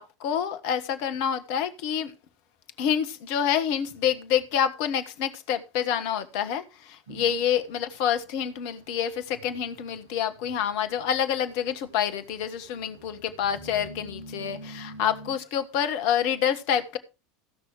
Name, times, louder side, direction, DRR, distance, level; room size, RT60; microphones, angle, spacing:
voice 1, 0.0-2.1 2.8-17.0, left 9 dB, 55° left, 1.4 m, -27 dB
sound 1, 7.1-15.4, right 2 dB, 70° right, 1.4 m, -48 dB
15.5 x 6.1 x 4.8 m
figure-of-eight pair, 75°, 0 cm